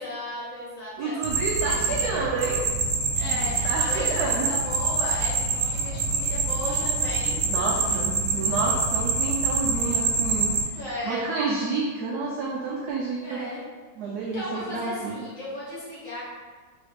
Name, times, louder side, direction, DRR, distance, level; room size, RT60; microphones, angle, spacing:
voice 1, 0.0-1.1 1.6-2.3 3.1-7.4 7.7-8.0 10.7-11.2 12.9-13.0 13.2-13.6 14.2-16.2, left 1 dB, 45° left, -8 dB, 1.5 m, -35 dB
voice 2, 1.0-2.6 3.2-4.5 7.5-10.5 11.1-13.4 14.0-15.2, right 3 dB, 80° right, -2 dB, 0.8 m, -29 dB
sound 1, 1.2-10.6, right 4 dB, 60° right, 1.2 m, -26 dB
3.9 x 3.1 x 3.4 m, 1.4 s
omnidirectional pair, 2.3 m